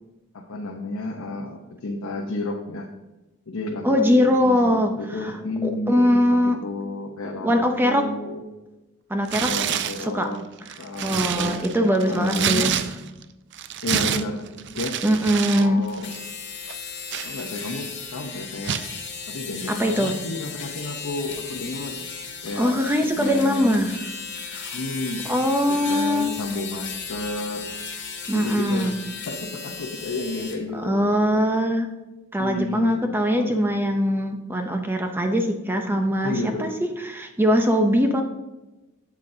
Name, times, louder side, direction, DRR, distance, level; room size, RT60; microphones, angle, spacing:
voice 1, 0.3-2.9 3.5-8.4 9.4-10.4 10.8-12.8 13.8-14.5 14.7-15.0 15.3-16.1 17.2-18.8 19.3-22.0 22.4-23.8 24.7-27.7 28.3-28.9 29.3-31.4 32.4-33.1 33.3-33.6 36.2-36.7, left 2 dB, 80° left, 0 dB, 0.8 m, -31 dB
voice 2, 3.8-4.9 5.2-5.3 5.6-6.6 7.4-8.1 9.1-9.5 10.0-10.3 11.0-12.7 15.0-15.8 19.8-20.2 22.6-24.0 24.5-24.8 25.3-26.3 28.3-29.0 30.7-31.9 32.3-36.3 36.6-36.7 37.0-38.2, equal, 10° right, 5 dB, 0.6 m, -21 dB
Tearing, 9.2-10.1 10.6-13.2 13.5-15.7 15.9-16.2 16.7-17.8 18.6-18.9, right 9 dB, 55° right, 0.4 m, -28 dB
sound 1, 15.9-30.6, left 5 dB, 55° left, 1.5 m, -36 dB
8.7 x 7.5 x 2.7 m, 1.1 s
head